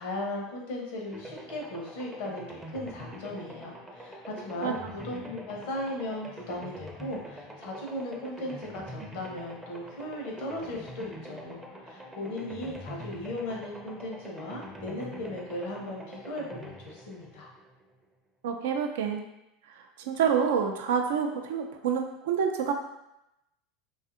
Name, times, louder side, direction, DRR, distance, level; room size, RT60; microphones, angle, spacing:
voice 1, 0.0-17.5, left 1 dB, 65° left, -1 dB, 0.7 m, -37 dB
sound 1, 1.1-18.0, equal, 10° right, 0.5 m, -44 dB
voice 2, 18.4-19.2 20.1-22.7, right 7 dB, 75° right, 4 dB, 0.3 m, -27 dB
2.6 x 2.4 x 2.5 m, 0.87 s
hypercardioid pair, 85°, 0 cm